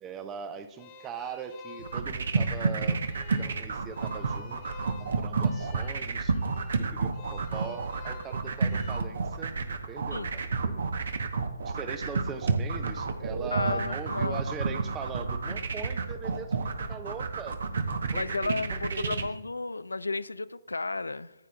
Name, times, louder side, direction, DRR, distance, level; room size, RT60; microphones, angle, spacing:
voice 1, 0.0-3.0 3.4-6.3 6.8-9.5 9.9-10.8 11.6-17.6 18.1-19.3, right 6 dB, 15° right, 0.5 m, -41 dB
sound 1, 0.7-9.0, left 6 dB, 30° left, 1.1 m, -51 dB
sound 2, 1.8-19.2, right 4 dB, 60° right, 0.9 m, -30 dB
voice 2, 13.5-14.4 18.1-21.3, left 3 dB, 80° left, 0.3 m, -33 dB
14.0 x 8.8 x 2.3 m
figure-of-eight pair, 135°, 0 cm